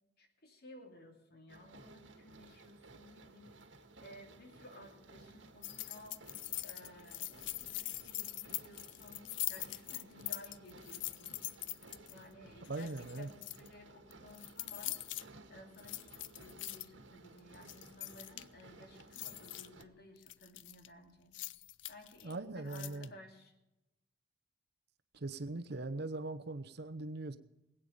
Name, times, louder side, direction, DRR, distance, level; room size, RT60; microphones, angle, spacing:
voice 1, 0.2-11.4 12.1-15.0 15.5-21.3 21.9-23.5, left 1 dB, 55° left, 3 dB, 2.8 m, -56 dB
sound 1, 1.5-19.8, right 2 dB, 85° right, 1.7 m, -57 dB
sound 2, 5.6-12.2 12.6-13.7 14.1-15.2 15.7-16.9 17.4-18.6 19.0-19.8 20.2-20.9 21.3-22.3 22.7-23.1, left 16 dB, 80° left, 0.5 m, -42 dB
voice 2, 12.7-13.3 22.2-23.1 25.1-27.4, right 2 dB, 60° right, 9 dB, 0.9 m, -40 dB
20.5 x 8.9 x 5.2 m, 0.93 s
head